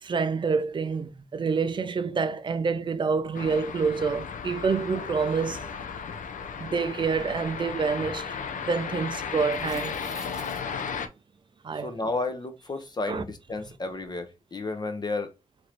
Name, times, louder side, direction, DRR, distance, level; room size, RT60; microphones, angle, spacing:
voice 1, 0.0-5.6 6.6-8.4 8.6-10.0 11.6-11.9 13.1-13.2, right 5 dB, 40° right, 0.4 m, -27 dB
sound 1, 3.3-11.1, left 6 dB, 85° left, 0.5 m, -35 dB
sound 2, 9.3-10.9, right 1 dB, 5° right, 0.7 m, -46 dB
voice 2, 11.8-15.3, left 3 dB, 35° left, 0.5 m, -32 dB
3.0 x 2.6 x 4.3 m
wide cardioid pair, 135°, 13 cm